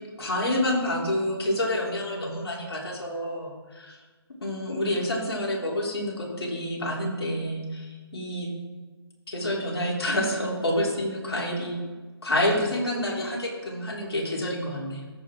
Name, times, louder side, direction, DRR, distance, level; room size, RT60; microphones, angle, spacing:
voice 1, 0.2-3.5 4.4-8.5 9.3-11.8 12.2-15.1, left 1 dB, 75° left, -3 dB, 3.1 m, -28 dB
14.0 x 6.3 x 3.6 m, 1.3 s
figure-of-eight pair, 150°, 13 cm